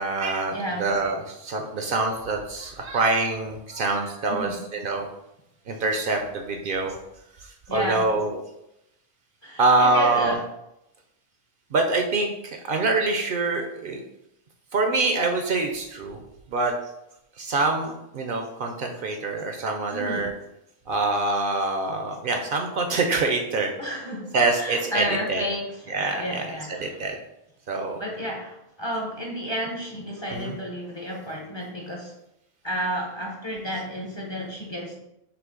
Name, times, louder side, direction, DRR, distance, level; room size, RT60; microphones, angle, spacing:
voice 1, 0.0-5.1 5.7-7.0 7.7-8.4 9.6-10.4 11.7-14.0 14.7-16.2 16.5-16.7 17.4-20.3 20.9-23.7 24.3-25.0 25.3-25.4 25.9-26.5 26.8-27.2 27.7-28.0 30.3-30.6, right 3 dB, 60° right, 3 dB, 0.6 m, -25 dB
voice 2, 0.5-0.9 4.3-4.7 5.7-5.8 7.7-8.0 9.4-10.4 19.9-20.3 23.8-27.0 28.0-32.1 32.6-35.0, equal, 30° left, -1 dB, 0.6 m, -32 dB
5.6 x 2.0 x 3.7 m, 0.84 s
omnidirectional pair, 1.1 m